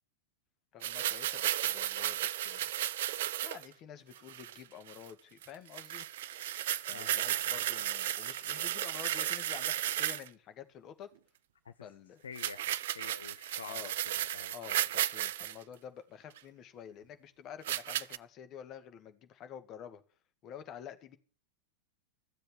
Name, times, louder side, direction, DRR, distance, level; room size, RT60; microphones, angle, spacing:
voice 1, 0.7-2.7 3.4-6.1 6.9-11.1 11.8-12.2 13.7-13.9 14.5-20.0 20.4-21.2, left 8 dB, 35° left, 1.9 m, -49 dB
sound 1, 0.8-3.7 4.2-4.6 4.9-5.1 5.4-5.5 5.7-10.3 12.4-15.5 16.4-16.5 17.6-18.2, right 12 dB, 55° right, 0.6 m, -34 dB
voice 2, 6.9-7.9 11.6-11.7 12.2-14.5, left 6 dB, 70° left, 0.8 m, -49 dB
15.0 x 7.8 x 9.2 m
figure-of-eight pair, 90°, 0 cm